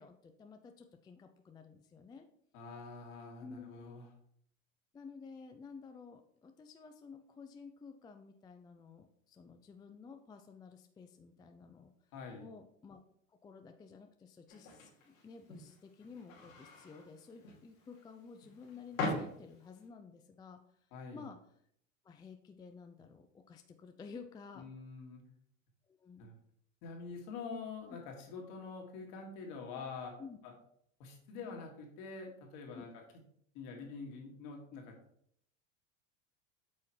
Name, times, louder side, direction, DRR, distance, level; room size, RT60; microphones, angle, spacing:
voice 1, 0.0-2.3 3.4-3.7 4.9-11.9 12.4-13.0 13.3-20.8 21.1-21.4 22.0-24.7 25.9-26.3 27.9-28.0 30.2-30.4 32.7-32.9, left 5 dB, 10° left, 6 dB, 0.4 m, -53 dB
voice 2, 2.5-4.0 12.1-12.5 20.9-21.3 24.6-25.2 26.2-26.3 26.8-30.1 30.4-30.5 31.0-32.9 33.5-34.9, left 4 dB, 55° left, 1 dB, 2.2 m, -46 dB
sound 1, 14.5-19.9, left 2 dB, 90° left, 2.7 m, -43 dB
8.3 x 5.6 x 3.2 m, 0.68 s
hypercardioid pair, 100°, 39 cm